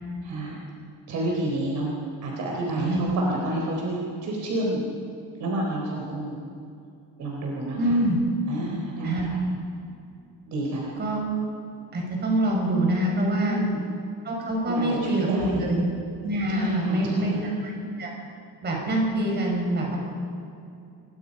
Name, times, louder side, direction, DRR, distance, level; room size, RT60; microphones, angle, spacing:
voice 1, 0.2-0.6 1.1-1.9 2.2-4.8 5.4-6.4 7.2-8.0 8.5-9.4 10.5-10.9 13.4-13.8 14.7-15.7 16.5-17.4, right 1 dB, 50° right, -2 dB, 4.2 m, -29 dB
voice 2, 7.8-8.2 9.0-9.3 11.0-11.2 11.9-13.6 14.2-15.9 16.2-17.3 17.6-17.7 18.0-18.1 18.6-20.0, right 1 dB, 30° right, -1 dB, 5.9 m, -25 dB
27.5 x 22.5 x 5.5 m, 2.6 s
cardioid pair, 180°, 36 cm